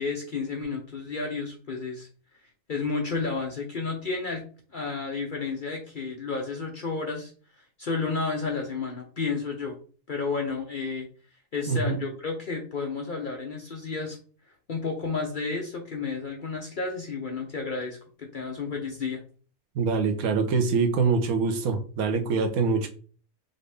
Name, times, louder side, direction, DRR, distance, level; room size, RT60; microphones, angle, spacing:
voice 1, 0.0-2.1 2.7-4.4 4.7-7.3 7.8-9.8 10.1-11.1 11.5-14.2 14.7-19.2, left 4 dB, 50° left, 1 dB, 0.6 m, -31 dB
voice 2, 11.7-12.0 19.7-22.9, right 4 dB, 75° right, 6 dB, 1.2 m, -24 dB
5.2 x 2.7 x 3.4 m, 0.41 s
omnidirectional pair, 1.5 m